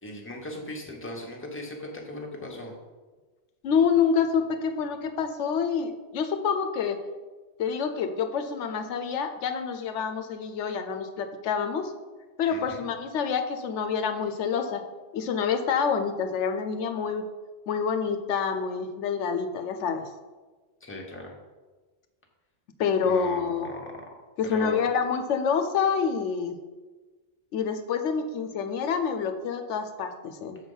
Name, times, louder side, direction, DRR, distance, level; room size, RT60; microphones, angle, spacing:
voice 1, 0.0-2.8 12.5-12.8 20.8-21.4 23.1-24.0 24.4-24.9, left 1 dB, 10° left, 0 dB, 1.0 m, -38 dB
voice 2, 3.6-7.0 7.6-11.9 12.4-14.8 15.1-17.3 17.7-20.0 22.8-23.7 24.4-26.6 27.5-30.6, left 6 dB, 80° left, 7 dB, 0.9 m, -27 dB
6.6 x 4.4 x 5.4 m, 1.3 s
omnidirectional pair, 1.2 m